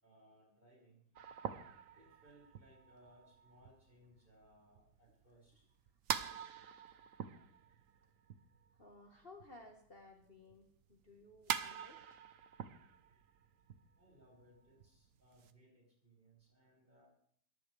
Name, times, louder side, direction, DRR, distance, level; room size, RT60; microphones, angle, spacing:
voice 1, 0.0-1.0 1.9-5.6 14.0-17.1, right 1 dB, 25° right, -3 dB, 6.2 m, -66 dB
sound 1, 1.2-9.7 10.0-15.5, right 8 dB, 55° right, 1.0 m, -45 dB
voice 2, 8.8-12.2, left 2 dB, 35° left, 2 dB, 1.5 m, -58 dB
21.5 x 15.0 x 3.4 m, 0.62 s
omnidirectional pair, 1.9 m